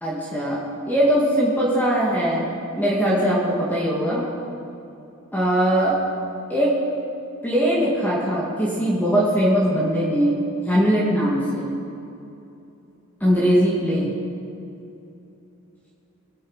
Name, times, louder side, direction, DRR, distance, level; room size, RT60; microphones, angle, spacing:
voice 1, 0.0-4.3 5.3-6.0 6.5-6.8 7.4-10.4 10.7-11.7 13.2-14.1, equal, 10° left, -6 dB, 2.3 m, -21 dB
21.0 x 8.7 x 5.7 m, 2.8 s
head